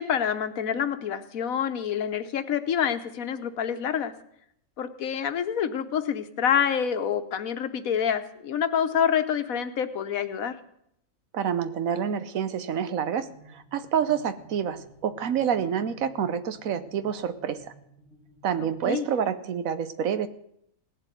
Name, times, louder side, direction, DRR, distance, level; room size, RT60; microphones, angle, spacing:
voice 1, 0.0-4.1 4.8-10.6 18.6-19.1, left 8 dB, 85° left, 10 dB, 1.4 m, -27 dB
voice 2, 11.3-17.7 18.4-20.3, right 8 dB, 80° right, 13 dB, 1.3 m, -28 dB
sound 1, 13.2-18.9, right 1 dB, 55° right, 2.9 m, -54 dB
17.5 x 7.7 x 9.2 m, 0.75 s
omnidirectional pair, 1.4 m